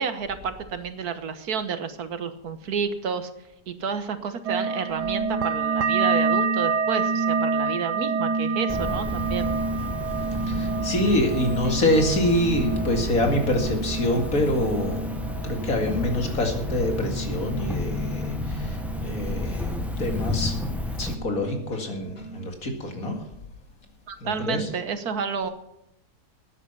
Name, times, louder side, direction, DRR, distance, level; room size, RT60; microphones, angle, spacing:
voice 1, 0.0-3.3 3.7-9.5 24.1-25.5, right 6 dB, 75° right, 10 dB, 1.7 m, -30 dB
sound 1, 4.5-19.6 19.9-20.7 21.0-21.7 22.1-22.5, right 4 dB, 90° right, 1.4 m, -29 dB
Cricket, 8.7-21.1, left 1 dB, ahead, 1.3 m, -31 dB
voice 2, 10.5-15.1 15.4-20.6 21.0-23.2 24.2-24.7, left 1 dB, 60° left, 4 dB, 2.6 m, -26 dB
13.5 x 9.9 x 5.6 m, 0.81 s
omnidirectional pair, 1.7 m